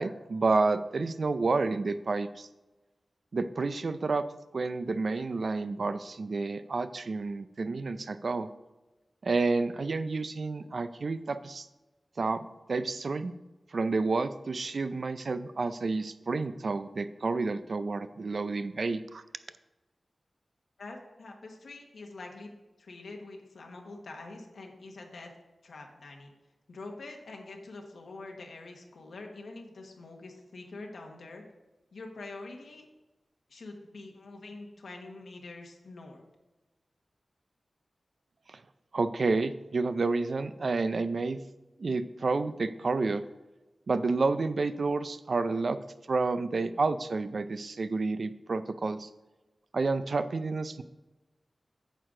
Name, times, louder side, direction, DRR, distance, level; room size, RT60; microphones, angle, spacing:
voice 1, 0.0-2.5 3.3-4.3 4.5-8.5 9.2-11.7 12.2-13.3 13.7-19.2 38.5-38.6 38.9-41.4 41.8-43.2 43.9-45.8 46.1-49.1 49.7-50.8, right 3 dB, 60° right, 12 dB, 0.5 m, -30 dB
voice 2, 20.8-22.5 22.8-25.3 25.6-26.3 26.7-31.4 31.9-32.9 33.5-36.2, left 3 dB, 90° left, 2 dB, 1.3 m, -45 dB
9.2 x 6.5 x 3.8 m, 1.1 s
wide cardioid pair, 90°, 0 cm